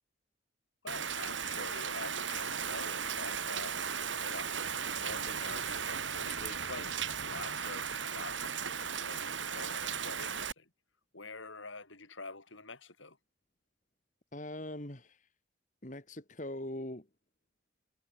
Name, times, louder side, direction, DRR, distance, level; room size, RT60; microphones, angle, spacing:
voice 1, 0.8-10.7 11.1-13.2, left 3 dB, 80° left, 7.1 m, -47 dB
Rain, 0.9-10.5, right 7 dB, 75° right, 4.7 m, -36 dB
voice 2, 14.3-15.3 15.8-17.1, left 1 dB, 40° left, 2.7 m, -41 dB
head